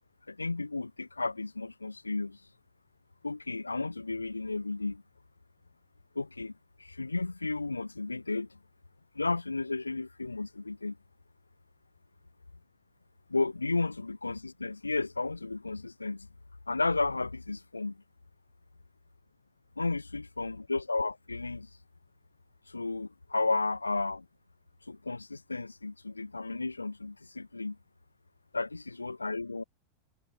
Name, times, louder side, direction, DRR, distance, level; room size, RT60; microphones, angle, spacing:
voice 1, 0.3-2.4 3.2-5.0 6.2-6.5 6.8-8.6 9.2-11.0 13.3-16.3 16.7-18.0 19.8-21.7 22.7-24.3 24.9-27.8 28.5-29.6, left 3 dB, 80° left, 0.3 m, -33 dB
figure-of-eight pair, 90°, 0 cm